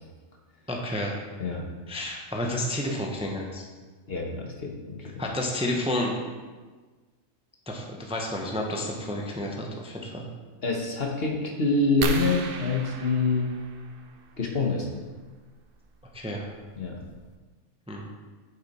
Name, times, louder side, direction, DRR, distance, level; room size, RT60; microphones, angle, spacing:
voice 1, 0.7-1.1 1.9-3.6 5.2-6.1 7.7-10.3 16.1-16.5 17.9-18.1, left 1 dB, 5° right, 0 dB, 0.8 m, -30 dB
voice 2, 4.1-5.0 10.6-13.5 14.4-14.9 16.8-17.0, left 3 dB, 50° left, 1 dB, 1.3 m, -26 dB
sound 1, 12.0-14.4 16.0-16.2 16.8-16.9 17.1-17.4, right 3 dB, 50° right, 0.8 m, -35 dB
8.3 x 7.2 x 4.3 m, 1.4 s
omnidirectional pair, 1.4 m